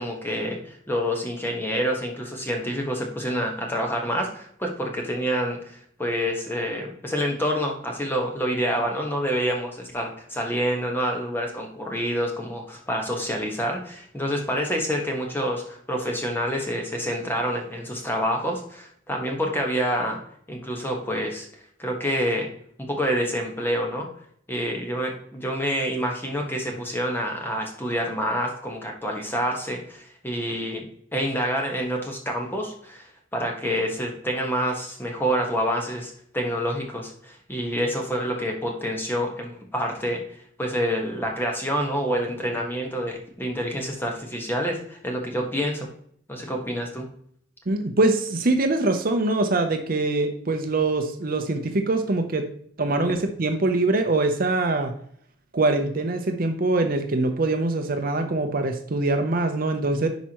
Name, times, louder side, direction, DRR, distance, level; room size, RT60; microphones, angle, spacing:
voice 1, 0.0-20.2 20.5-21.5 21.8-22.5 22.8-24.1 24.5-30.8 31.1-40.2 40.6-45.9 46.3-47.1, equal, 10° left, 1 dB, 1.3 m, -27 dB
voice 2, 47.7-52.5 52.8-54.9 55.5-60.1, right 2 dB, 45° right, 6 dB, 0.7 m, -23 dB
10.5 x 4.7 x 3.0 m, 0.63 s
head